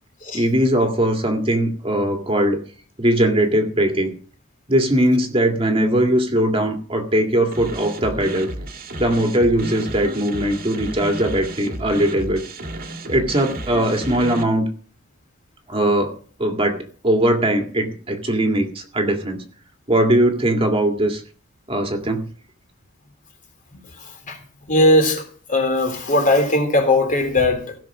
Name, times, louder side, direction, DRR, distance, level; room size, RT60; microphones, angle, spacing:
voice 1, 0.3-2.6 3.0-4.1 4.7-8.5 9.0-12.4 13.1-14.7 15.7-16.1 16.4-16.8 17.0-19.4 19.9-21.2 21.7-22.3, right 1 dB, 30° right, 2.1 m, -20 dB
sound 1, 7.5-14.4, right 1 dB, 45° right, 1.9 m, -32 dB
voice 2, 24.0-24.4 24.7-27.8, left 1 dB, 40° left, 3.5 m, -19 dB
17.0 x 6.4 x 7.3 m
head